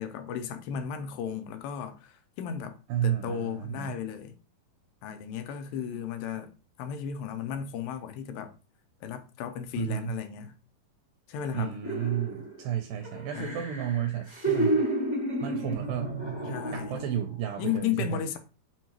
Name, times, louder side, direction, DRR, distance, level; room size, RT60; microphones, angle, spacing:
voice 1, 0.0-2.8 3.0-4.3 5.0-8.6 9.0-10.5 11.3-11.8 12.4-12.5 13.4-13.6 16.5-17.0 17.6-18.4, left 9 dB, 80° left, 2.3 m, -35 dB
voice 2, 2.9-4.0 9.8-10.2 11.5-14.9 15.4-16.2 16.7-18.2, right 10 dB, 80° right, 2.2 m, -32 dB
sound 1, 11.8-12.6 13.0-17.2 17.6-17.7, right 2 dB, 40° left, 0.6 m, -31 dB
6.0 x 2.7 x 2.9 m
omnidirectional pair, 4.1 m